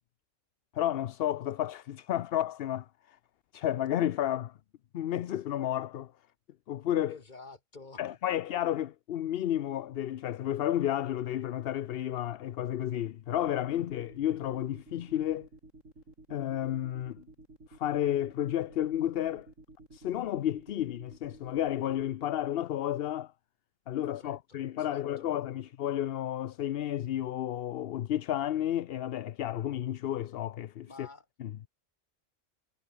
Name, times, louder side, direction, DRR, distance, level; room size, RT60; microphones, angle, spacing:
voice 1, 0.7-3.2 3.5-4.5 4.9-6.1 6.7-7.1 8.0-15.5 16.3-17.2 17.8-19.5 19.9-23.3 23.9-31.1 31.4-31.5, left 11 dB, 60° left, 0.7 m, -32 dB
voice 2, 7.1-8.4 24.2-25.7 30.9-31.3, left 3 dB, 35° left, 2.2 m, -51 dB
sound 1, 13.3-22.1, right 2 dB, 75° right, 6.2 m, -53 dB
omnidirectional pair, 1.3 m